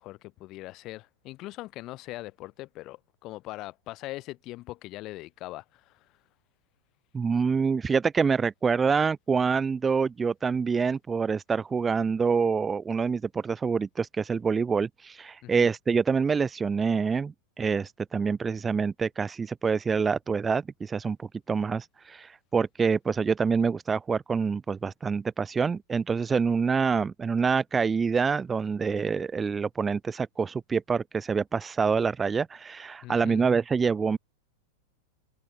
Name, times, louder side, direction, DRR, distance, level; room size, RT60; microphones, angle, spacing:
voice 1, 0.0-6.1 15.4-15.7 33.0-33.4, left 18 dB, 40° left, 6.9 m, -41 dB
voice 2, 7.1-34.2, right 5 dB, 15° right, 1.0 m, -26 dB
figure-of-eight pair, 90°, 0 cm